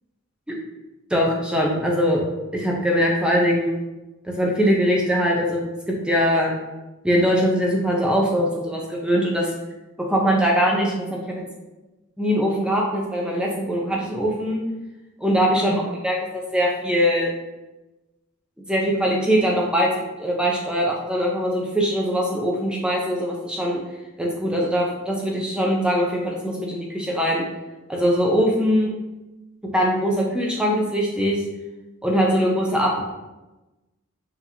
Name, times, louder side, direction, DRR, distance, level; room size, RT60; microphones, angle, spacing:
voice 1, 1.1-2.3 2.5-3.8 4.2-6.5 7.0-9.5 10.0-11.4 12.2-14.6 15.2-15.7 16.0-17.3 18.7-19.9 20.2-23.8 24.2-27.5 27.9-28.9 29.7-31.4 32.0-33.0, equal, 5° right, -2 dB, 0.5 m, -22 dB
6.1 x 2.9 x 2.7 m, 1.1 s
head